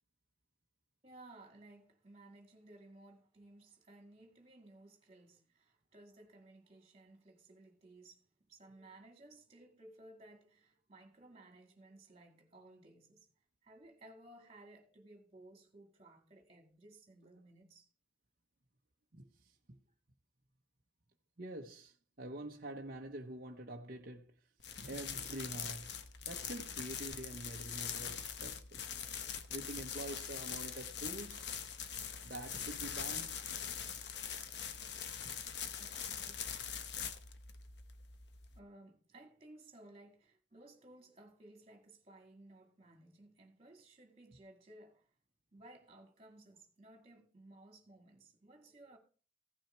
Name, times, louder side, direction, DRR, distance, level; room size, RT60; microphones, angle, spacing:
voice 1, 1.0-13.3 13.6-17.9 35.8-36.6 38.5-45.1 45.5-49.0, right 2 dB, 30° right, 2.2 m, -58 dB
voice 2, 19.1-19.8 21.4-24.3 24.8-25.9 26.2-28.8 29.5-31.5 32.2-33.4 35.2-35.3, right 1 dB, 45° right, 0.8 m, -46 dB
sound 1, 24.6-38.6, left 7 dB, 55° left, 0.9 m, -43 dB
15.5 x 6.3 x 4.4 m
head